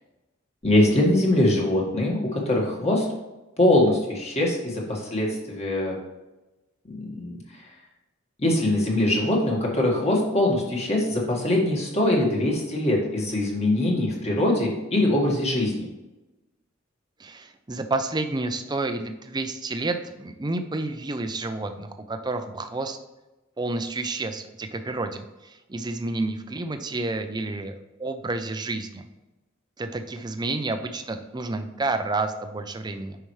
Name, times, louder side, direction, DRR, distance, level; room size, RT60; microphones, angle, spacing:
voice 1, 0.6-3.1 3.6-6.0 6.9-7.4 8.4-15.9, left 1 dB, 35° left, -2 dB, 1.8 m, -22 dB
voice 2, 17.2-23.0 23.6-29.1 29.8-33.2, right 2 dB, 20° right, 7 dB, 0.5 m, -30 dB
9.0 x 5.8 x 3.2 m, 1.0 s
head